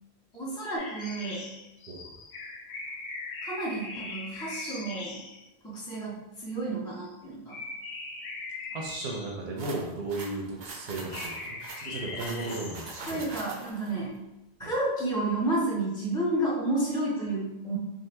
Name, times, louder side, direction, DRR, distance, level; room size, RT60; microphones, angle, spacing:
voice 1, 0.3-1.5 3.4-5.2 5.6-7.6 13.1-14.1 14.6-17.8, right 2 dB, 5° left, -8 dB, 0.4 m, -31 dB
sound 1, 0.8-5.4 6.9-7.2 7.5-9.7 11.1-13.0, left 3 dB, 85° left, 0.9 m, -40 dB
voice 2, 8.7-13.4 14.6-14.7, right 2 dB, 75° right, -1 dB, 0.8 m, -35 dB
sound 2, 9.6-13.9, right 2 dB, 55° right, 0.5 m, -42 dB
2.8 x 2.5 x 3.2 m, 0.90 s
omnidirectional pair, 1.1 m